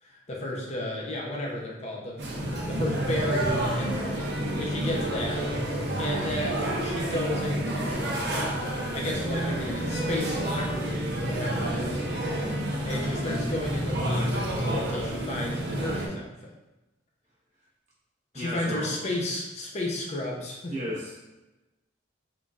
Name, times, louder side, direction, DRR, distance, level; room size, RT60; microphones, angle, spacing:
voice 1, 0.0-2.2 2.5-4.2 4.6-5.4 6.0-8.6 8.9-12.0 12.4-16.5 18.3-20.7, left 1 dB, 35° left, -2 dB, 0.6 m, -33 dB
sound 1, 2.2-16.1, right 1 dB, 60° right, 0.8 m, -29 dB
voice 2, 11.4-11.9 18.3-19.0 20.7-21.2, equal, 40° right, -5 dB, 1.1 m, -35 dB
3.8 x 3.7 x 2.4 m, 1.0 s
head